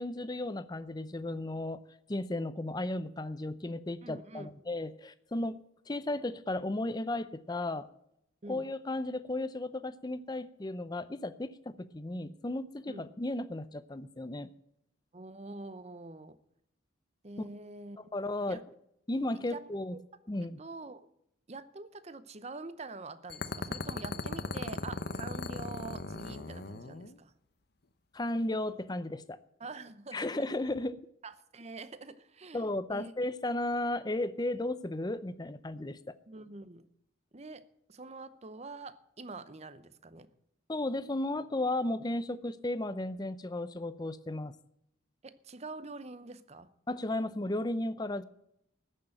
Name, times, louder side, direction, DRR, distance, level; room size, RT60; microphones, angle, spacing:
voice 1, 0.0-1.8 2.1-5.6 5.9-7.9 8.5-14.5 18.1-18.6 19.1-19.9 20.3-20.6 28.1-29.4 30.1-31.0 32.5-36.0 40.7-44.6 46.9-48.2, left 1 dB, 20° left, 14 dB, 0.5 m, -34 dB
voice 2, 4.0-4.5 8.4-8.7 12.9-13.0 15.1-16.4 17.2-18.1 18.5-18.6 19.5-20.0 20.6-21.1 21.5-27.3 29.6-30.3 31.2-33.1 36.3-36.9 37.3-40.3 45.2-46.7, right 3 dB, 35° right, 14 dB, 0.7 m, -46 dB
sound 1, 23.3-27.1, left 3 dB, 50° left, 0.8 m, -38 dB
14.5 x 6.5 x 8.9 m, 0.77 s
head